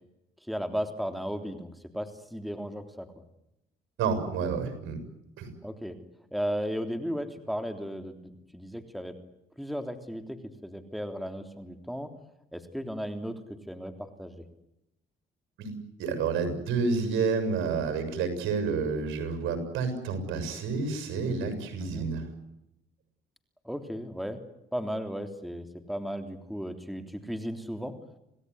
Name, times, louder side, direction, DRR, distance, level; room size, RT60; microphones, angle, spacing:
voice 1, 0.5-3.1 5.6-6.0 6.3-9.2 9.6-12.1 12.5-13.4 13.7-14.4 21.8-22.1 23.6-24.4 24.7-27.9, equal, ahead, 7 dB, 3.4 m, -35 dB
voice 2, 4.0-5.0 5.4-5.5 15.6-22.3, right 5 dB, 85° right, 9 dB, 7.0 m, -29 dB
27.5 x 18.0 x 9.9 m, 0.85 s
cardioid pair, 90°, 20 cm